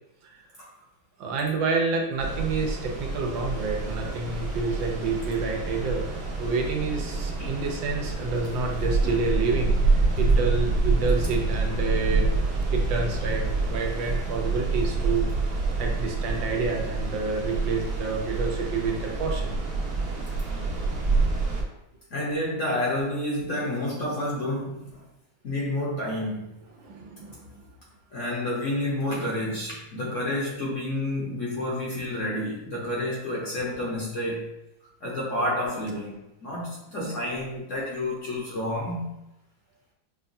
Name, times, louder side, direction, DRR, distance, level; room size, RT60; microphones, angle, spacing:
voice 1, 1.2-6.1 6.4-9.7 10.2-12.2 12.7-19.5 26.8-27.5 37.7-37.8, right 4 dB, 85° right, 1 dB, 1.4 m, -29 dB
sound 1, 2.2-21.6, right 3 dB, 65° right, 1.3 m, -27 dB
voice 2, 22.1-25.0 25.4-26.6 28.1-34.5 35.0-39.1, left 1 dB, 55° left, -5 dB, 0.9 m, -30 dB
5.5 x 2.2 x 2.6 m, 0.86 s
omnidirectional pair, 2.0 m